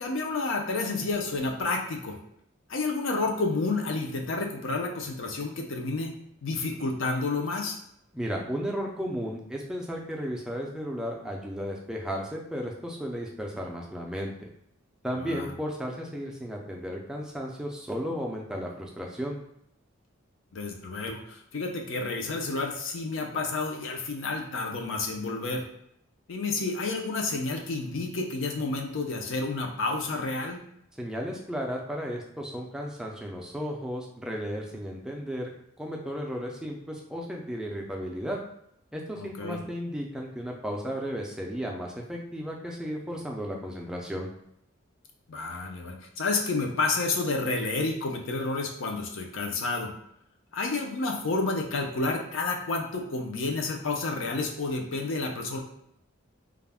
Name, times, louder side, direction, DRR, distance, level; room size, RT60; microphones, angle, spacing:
voice 1, 0.0-2.2 2.7-6.1 6.4-7.8 15.2-15.5 20.5-25.6 26.3-30.6 39.1-39.6 45.3-49.9 50.5-55.6, left 3 dB, 70° left, 2 dB, 0.5 m, -30 dB
voice 2, 8.1-14.3 15.0-19.4 31.0-35.5 35.8-38.4 38.9-44.3, equal, 5° right, -1 dB, 0.3 m, -34 dB
2.3 x 2.0 x 3.4 m, 0.75 s
head